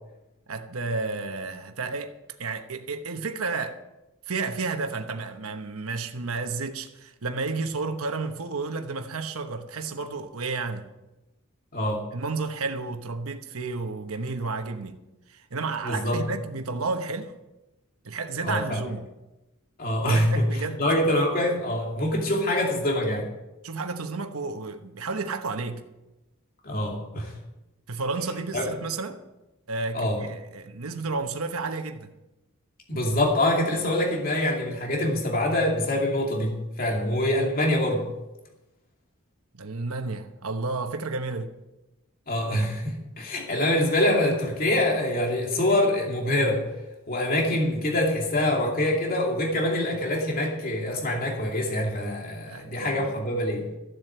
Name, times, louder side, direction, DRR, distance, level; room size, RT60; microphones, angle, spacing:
voice 1, 0.5-2.1 2.4-3.8 4.3-10.9 12.1-15.0 15.3-17.3 18.0-19.1 20.0-20.8 23.6-25.8 27.9-29.2 29.7-32.1 39.5-41.5 52.5-53.2, right 3 dB, 90° right, 1.1 m, -31 dB
voice 2, 11.7-12.1 15.8-16.2 18.4-18.8 19.8-20.5 20.8-23.3 26.6-27.3 28.5-28.7 29.9-30.2 32.9-38.1 42.3-46.7 47.1-53.7, left 1 dB, 45° left, 2.6 m, -25 dB
14.5 x 7.8 x 7.9 m
head